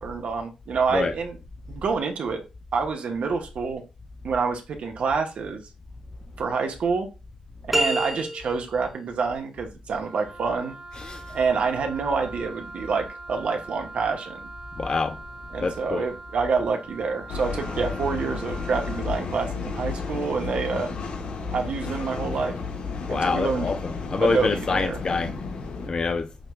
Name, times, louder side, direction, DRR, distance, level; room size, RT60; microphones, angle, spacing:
voice 1, 0.0-1.4 1.7-2.4 2.7-3.8 4.2-5.6 6.4-7.1 7.7-10.7 11.3-14.4 15.5-20.9 21.5-22.6 23.1-23.7 24.2-25.0, right 5 dB, 75° right, 0.9 m, -27 dB
sound 1, 7.7-8.8, right 1 dB, 5° right, 0.7 m, -26 dB
Wind instrument woodwind instrument, 10.0-19.1, right 2 dB, 50° right, 1.6 m, -42 dB
voice 2, 14.8-15.2 15.6-16.1 23.1-25.3 25.9-26.3, left 4 dB, 40° left, 0.4 m, -26 dB
sound 2, 17.3-25.9, left 4 dB, 85° left, 0.9 m, -32 dB
6.4 x 2.2 x 3.1 m
wide cardioid pair, 110°, 2 cm